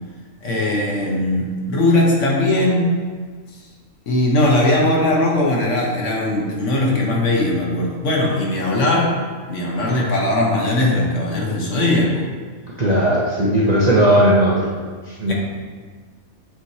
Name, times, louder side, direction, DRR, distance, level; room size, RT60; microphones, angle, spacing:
voice 1, 0.4-3.0 4.1-9.1 9.5-12.2 15.3-15.4, left 1 dB, 60° left, -2 dB, 1.4 m, -19 dB
voice 2, 12.8-14.7 15.1-15.3, right 1 dB, 35° right, -6 dB, 0.7 m, -16 dB
8.1 x 4.7 x 2.8 m, 1.5 s
omnidirectional pair, 1.5 m